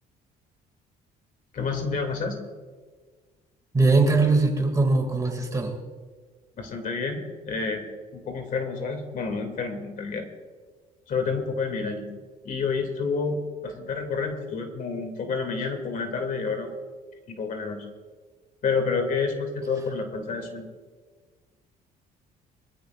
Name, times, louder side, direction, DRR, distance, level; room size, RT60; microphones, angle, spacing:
voice 1, 1.5-2.4 6.6-7.8 8.1-10.3 11.1-12.1 12.4-16.7 17.3-17.8 18.6-20.6, left 4 dB, 50° left, 4 dB, 2.5 m, -29 dB
voice 2, 3.7-5.8, right 3 dB, 20° right, 3 dB, 2.3 m, -21 dB
23.5 x 14.0 x 2.5 m, 1.5 s
cardioid pair, 110°, 17 cm